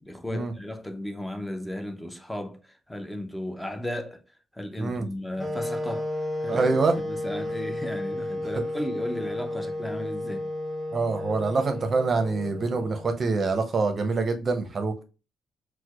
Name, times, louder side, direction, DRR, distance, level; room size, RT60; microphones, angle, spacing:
voice 1, 0.0-4.2 4.5-6.1 6.4-6.7 7.0-10.5, left 1 dB, 5° left, 0.6 m, -35 dB
sound 1, 5.4-13.4, left 1 dB, 20° right, 0.9 m, -33 dB
voice 2, 6.5-7.0 10.9-15.0, right 4 dB, 40° right, 0.6 m, -25 dB
4.4 x 2.1 x 2.3 m
cardioid pair, 90°, 0 cm